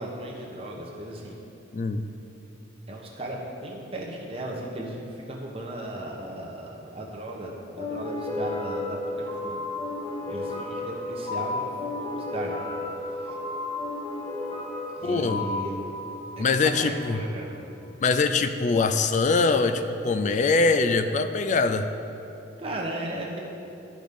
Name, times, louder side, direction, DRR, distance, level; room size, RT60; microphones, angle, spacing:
voice 1, 0.0-1.4 2.9-9.6 10.2-11.7 12.0-12.5 13.1-13.4 15.0-15.8 16.4-17.5 22.6-23.4, right 1 dB, 30° right, -2 dB, 1.1 m, -36 dB
sound 1, 7.8-17.0, left 2 dB, 25° left, 1.6 m, -33 dB
voice 2, 15.0-15.4 16.4-17.2 18.0-21.9, left 4 dB, 40° left, 9 dB, 0.3 m, -23 dB
11.5 x 5.1 x 5.3 m, 2.9 s
head